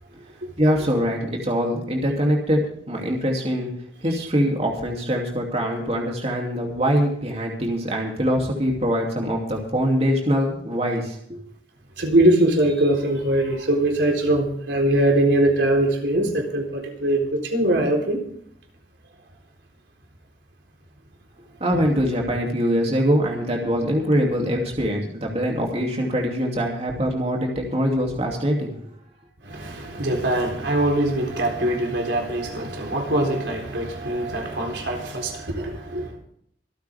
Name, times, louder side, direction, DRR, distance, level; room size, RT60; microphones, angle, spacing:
voice 1, 0.6-3.7 4.0-11.4 21.6-28.7, equal, 35° right, 2.8 m, -23 dB
voice 2, 12.0-18.2 29.4-36.1, right 1 dB, 90° right, 4.0 m, -22 dB
26.0 x 9.3 x 3.6 m
head